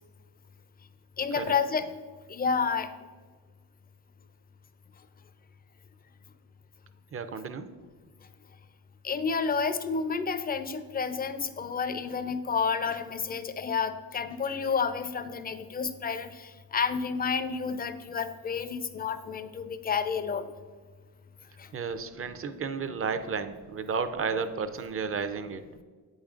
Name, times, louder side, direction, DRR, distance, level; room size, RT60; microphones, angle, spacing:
voice 1, 1.2-1.9 2.3-2.9 9.0-20.5 21.6-21.7, left 5 dB, 25° left, 11 dB, 0.4 m, -30 dB
voice 2, 7.1-7.7 21.7-25.6, right 5 dB, 35° right, 10 dB, 0.5 m, -32 dB
8.2 x 5.2 x 2.4 m, 1.5 s
supercardioid pair, 65°, 39 cm